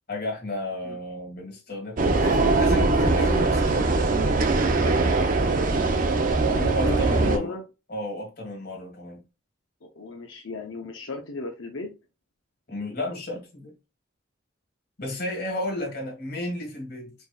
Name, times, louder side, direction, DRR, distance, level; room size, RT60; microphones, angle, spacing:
voice 1, 0.1-4.1 6.7-7.6 7.9-9.2 12.7-13.7 15.0-17.1, left 1 dB, 50° left, 1.6 m, -33 dB
sound 1, 2.0-7.4, right 3 dB, 40° right, 0.5 m, -21 dB
voice 2, 6.5-7.6 9.8-11.9, left 2 dB, 90° left, 0.7 m, -35 dB
4.7 x 2.7 x 2.3 m
head